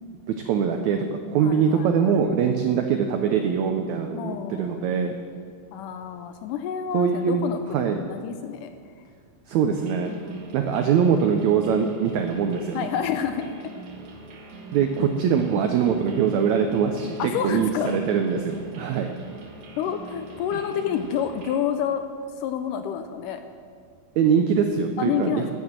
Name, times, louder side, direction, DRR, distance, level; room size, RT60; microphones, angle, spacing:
voice 1, 0.5-1.0 1.3-5.1 6.9-7.4 7.7-8.0 9.5-10.1 10.5-12.9 14.7-19.1 24.2-25.5, right 7 dB, 90° right, 5 dB, 1.6 m, -22 dB
voice 2, 1.4-2.2 4.1-4.8 5.7-8.7 10.0-10.7 12.7-13.5 14.9-15.2 17.2-18.0 19.8-22.0 22.4-23.4 25.0-25.5, left 8 dB, 80° left, 8 dB, 2.0 m, -29 dB
sound 1, 9.7-21.6, right 2 dB, 75° right, 3.1 m, -43 dB
9.8 x 9.4 x 7.4 m, 2.1 s
omnidirectional pair, 4.1 m